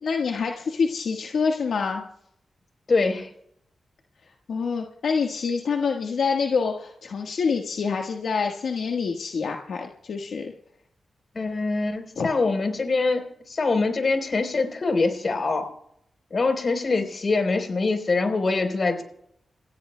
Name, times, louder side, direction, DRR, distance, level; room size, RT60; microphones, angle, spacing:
voice 1, 0.0-2.0 4.5-10.5 12.2-12.3, left 5 dB, 80° left, 2 dB, 1.4 m, -26 dB
voice 2, 2.9-3.3 11.3-15.7 16.3-19.0, left 3 dB, 55° left, 6 dB, 3.7 m, -24 dB
29.5 x 16.0 x 2.2 m, 0.71 s
cardioid pair, 50°, 0 cm